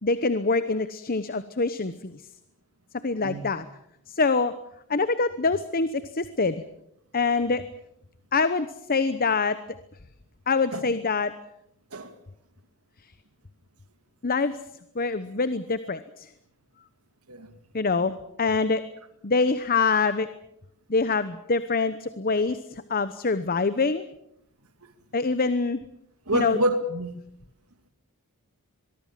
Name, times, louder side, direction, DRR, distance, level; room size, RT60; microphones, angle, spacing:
voice 1, 0.0-2.2 3.0-3.7 4.1-4.5 4.9-6.6 7.1-7.6 8.3-9.6 10.5-11.3 14.2-14.6 14.9-16.3 17.7-18.8 19.2-20.3 20.9-24.0 25.1-25.8 26.3-26.6, left 4 dB, 40° left, 1.0 m, -25 dB
voice 2, 3.1-3.4 10.7-10.9 11.9-12.1 17.3-17.5 24.8-24.9 26.3-27.1, right 1 dB, 80° right, 2.5 m, -27 dB
23.5 x 22.5 x 7.5 m
head